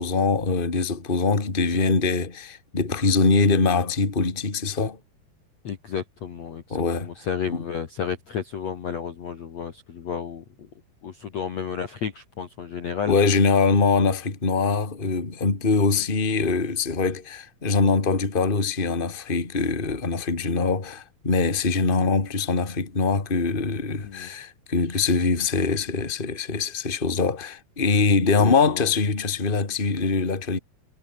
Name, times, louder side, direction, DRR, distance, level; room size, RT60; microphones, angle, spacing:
voice 1, 0.0-5.0 6.7-7.1 7.5-7.6 13.1-30.6, left 4 dB, 15° left, 2.2 m, -23 dB
voice 2, 5.6-10.7 11.0-13.2 24.0-24.3 28.3-28.9, left 7 dB, 50° left, 2.4 m, -32 dB
omnidirectional pair, 5.2 m